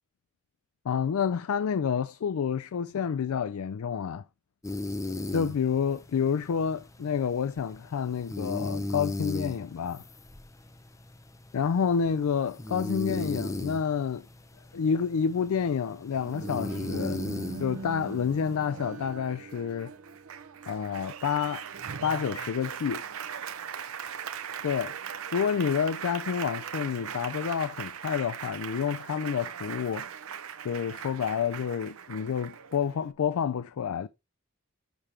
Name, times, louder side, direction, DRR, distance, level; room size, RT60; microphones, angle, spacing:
voice 1, 0.8-4.2 5.3-10.0 11.5-14.3 14.7-17.3 17.6-19.9 20.7-21.6 22.0-23.1 24.6-25.0 25.3-30.1 30.6-34.1, left 7 dB, 85° left, 0.4 m, -29 dB
sound 1, 4.6-18.6, left 2 dB, 15° left, 0.6 m, -37 dB
Applause, 16.1-33.1, right 7 dB, 75° right, 0.7 m, -39 dB
6.9 x 4.3 x 4.8 m
head